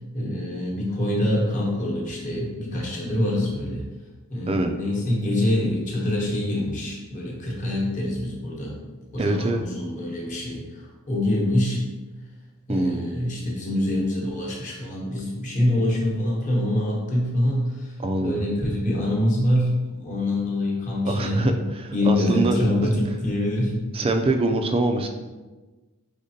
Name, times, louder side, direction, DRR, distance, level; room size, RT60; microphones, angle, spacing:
voice 1, 0.1-3.8 4.3-8.8 9.1-11.8 12.7-21.4 21.9-23.8, left 1 dB, 35° left, -3 dB, 1.0 m, -25 dB
voice 2, 9.2-9.6 12.7-13.2 18.0-18.4 21.0-22.9 23.9-25.1, right 2 dB, 25° right, 5 dB, 0.3 m, -24 dB
5.0 x 3.6 x 2.7 m, 1.2 s
head